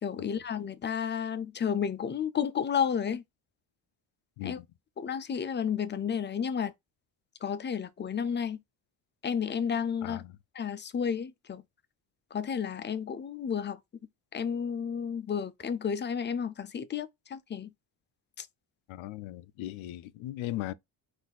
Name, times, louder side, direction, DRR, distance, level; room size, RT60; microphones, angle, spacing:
voice 1, 0.0-3.2 4.4-4.6 5.0-6.7 7.4-8.6 9.2-10.2 10.6-11.6 12.3-13.8 14.3-17.7 18.4-18.5, left 7 dB, 25° left, 0.4 m, -32 dB
voice 2, 10.0-10.4 18.9-20.7, left 15 dB, 85° left, 0.5 m, -38 dB
3.9 x 2.6 x 4.0 m
cardioid pair, 135°, 46 cm